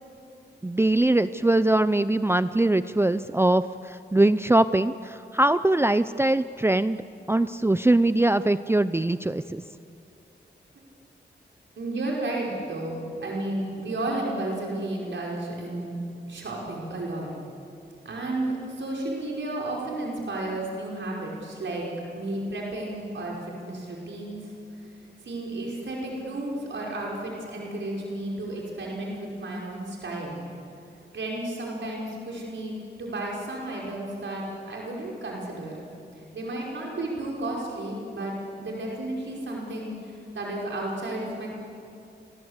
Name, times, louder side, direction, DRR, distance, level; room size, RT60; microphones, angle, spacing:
voice 1, 0.6-9.6, right 2 dB, 15° right, 13 dB, 0.5 m, -22 dB
voice 2, 11.8-15.9 16.3-17.3 18.1-24.5 24.8-24.9 25.2-30.4 31.1-35.8 36.3-38.3 38.6-41.5, right 2 dB, 85° right, -3 dB, 5.2 m, -32 dB
29.5 x 23.0 x 8.1 m, 2.6 s
wide cardioid pair, 80°, 19 cm